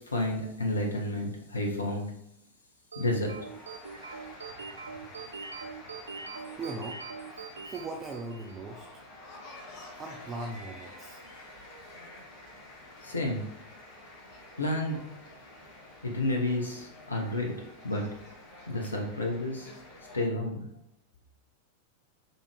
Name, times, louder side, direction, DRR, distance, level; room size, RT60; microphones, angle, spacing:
voice 1, 0.1-2.1 3.0-3.3 13.0-13.4 14.6-15.0 16.0-17.5 17.8-18.1 18.7-19.7 20.1-20.7, left 1 dB, 75° left, 0 dB, 0.8 m, -30 dB
sound 1, 2.9-8.7, right 5 dB, 75° right, 0.3 m, -43 dB
sound 2, 3.0-20.2, left 1 dB, 45° left, 1.4 m, -49 dB
voice 2, 6.6-7.0 7.3-8.9 10.0-11.2, right 2 dB, 20° right, 1 dB, 0.5 m, -39 dB
4.0 x 3.4 x 3.3 m, 0.77 s
figure-of-eight pair, 90°, 0 cm